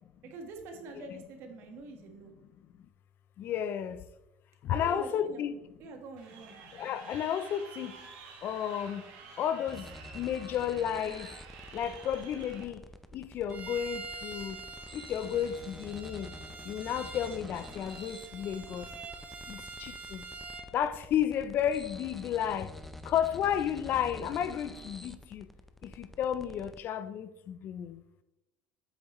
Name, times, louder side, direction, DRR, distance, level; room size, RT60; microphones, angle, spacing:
voice 1, 0.2-2.3 4.7-5.4 5.8-6.6, right 3 dB, 65° right, 1.5 m, -45 dB
voice 2, 1.0-1.3 3.4-4.0 4.6-5.6 6.8-7.9 8.4-9.0 9.4-9.9 10.1-11.3 11.7-12.8 13.1-14.6 14.9-16.3 16.7-18.9 19.5-20.2 20.7-22.7 23.1-25.5 26.0-28.0, left 9 dB, 50° left, 0.5 m, -32 dB
Crowd, 6.2-12.6, right 5 dB, 80° right, 1.8 m, -50 dB
sound 1, 9.7-26.8, left 1 dB, 5° left, 0.5 m, -48 dB
Bowed string instrument, 13.5-20.7, right 4 dB, 35° right, 0.9 m, -45 dB
8.0 x 6.3 x 3.1 m
cardioid pair, 120°, 4 cm